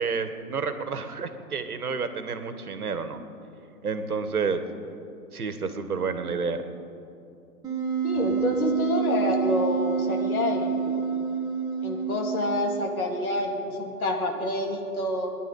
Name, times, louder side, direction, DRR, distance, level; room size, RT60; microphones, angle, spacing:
voice 1, 0.0-3.2 3.8-4.6 5.3-6.6, right 5 dB, 70° right, 9 dB, 1.6 m, -30 dB
Wind instrument woodwind instrument, 7.6-13.0, right 6 dB, 10° right, 1.5 m, -28 dB
voice 2, 8.0-10.9 11.8-15.4, left 1 dB, 70° left, 2 dB, 2.7 m, -28 dB
22.0 x 11.0 x 5.5 m, 2.7 s
figure-of-eight pair, 120°, 45 cm